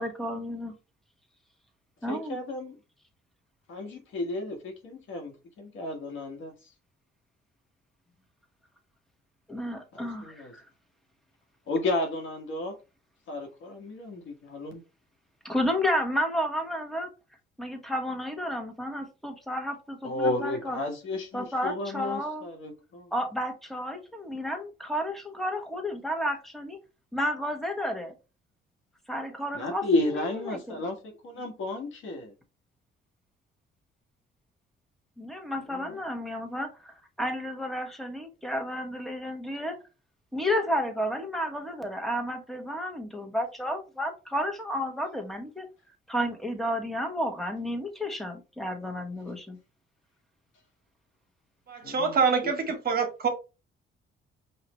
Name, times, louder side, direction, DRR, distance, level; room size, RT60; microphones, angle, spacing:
voice 1, 0.0-0.7 2.0-2.4 9.5-10.6 15.4-17.1 17.6-20.8 21.3-22.5 23.1-26.8 27.1-28.1 29.1-30.8 35.2-39.8 40.3-45.6 46.1-49.6, equal, ahead, 1.2 m, -32 dB
voice 2, 2.1-2.8 3.7-6.5 9.9-10.5 11.7-12.7 13.3-14.8 20.0-23.1 29.5-32.3 35.7-36.0 51.8-52.2 52.4-52.5, left 2 dB, 80° left, 1.4 m, -32 dB
voice 3, 51.7-53.3, right 5 dB, 50° right, 1.3 m, -26 dB
5.6 x 2.5 x 3.0 m
cardioid pair, 90°, 20 cm